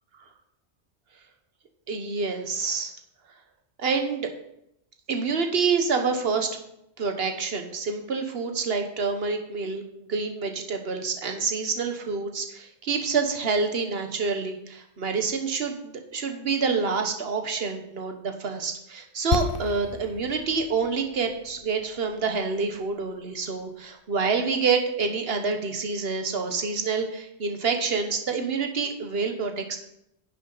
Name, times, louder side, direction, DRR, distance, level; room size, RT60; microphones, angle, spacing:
voice 1, 1.9-2.9 3.8-4.3 5.1-6.6 7.0-9.8 10.1-29.8, right 5 dB, 60° right, 5 dB, 1.3 m, -27 dB
sound 1, 19.3-23.2 23.5-23.6, left 9 dB, 60° left, 0.8 m, -33 dB
11.0 x 7.5 x 4.0 m, 0.78 s
omnidirectional pair, 1.2 m